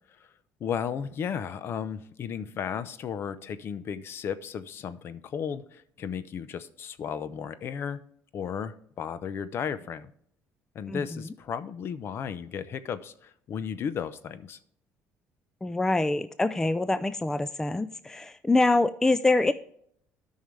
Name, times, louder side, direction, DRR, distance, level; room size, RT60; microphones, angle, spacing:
voice 1, 0.6-8.0 8.3-10.1 10.7-14.6, left 7 dB, 50° left, 14 dB, 0.7 m, -34 dB
voice 2, 15.6-19.5, left 2 dB, 10° left, 13 dB, 0.4 m, -25 dB
12.5 x 5.6 x 3.2 m, 0.67 s
cardioid pair, 115°, 5 cm